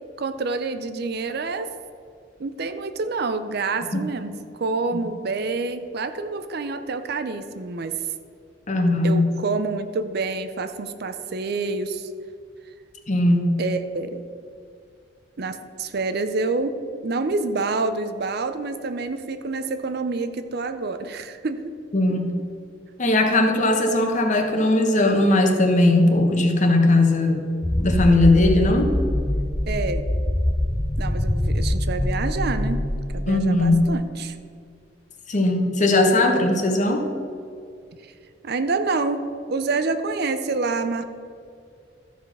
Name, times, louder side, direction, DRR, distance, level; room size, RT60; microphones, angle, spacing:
voice 1, 0.2-1.7 2.4-8.0 9.0-12.1 13.6-14.2 15.4-21.6 22.1-22.2 29.7-30.1 31.0-32.8 33.1-34.4 38.4-39.2 39.5-41.0, right 3 dB, 60° right, 10 dB, 0.6 m, -27 dB
voice 2, 8.7-9.3 13.1-13.5 21.9-22.3 23.0-27.4 27.8-28.9 33.3-33.8 35.3-37.0, left 2 dB, 40° left, 3 dB, 1.2 m, -19 dB
sound 1, 27.6-33.9, left 1 dB, 10° left, 0.4 m, -24 dB
13.5 x 5.0 x 5.7 m, 2.4 s
head